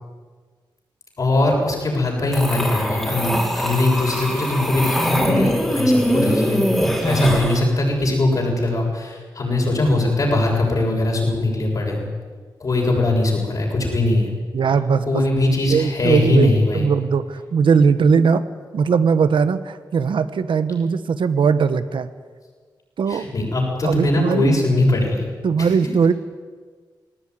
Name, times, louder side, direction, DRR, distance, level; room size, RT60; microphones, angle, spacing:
voice 1, 1.2-12.1 12.6-14.3 15.1-16.9 23.1-25.3 25.6-25.7, left 2 dB, 45° left, -1 dB, 7.1 m, -21 dB
sound 1, 2.3-7.6, equal, 5° left, 4.3 m, -21 dB
voice 2, 14.5-15.2 15.7-18.4 18.7-22.1 23.0-23.3 23.8-24.5 25.4-26.1, right 6 dB, 80° right, 12 dB, 1.2 m, -19 dB
19.5 x 19.0 x 9.8 m, 1.5 s
wide cardioid pair, 165°, 8 cm